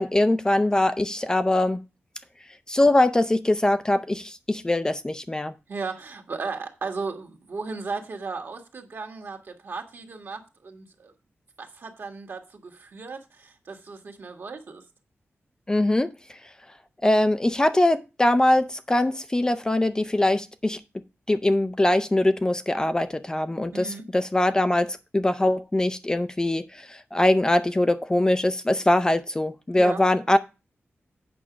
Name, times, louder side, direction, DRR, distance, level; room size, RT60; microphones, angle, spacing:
voice 1, 0.0-1.8 2.7-5.5 15.7-16.4 17.0-20.8 21.3-30.4, left 1 dB, 15° left, 0.4 m, -22 dB
voice 2, 5.7-11.1 11.6-14.8 23.7-24.0 29.8-30.0, right 4 dB, 55° right, 1.6 m, -36 dB
8.5 x 5.6 x 4.9 m
wide cardioid pair, 160°, 5 cm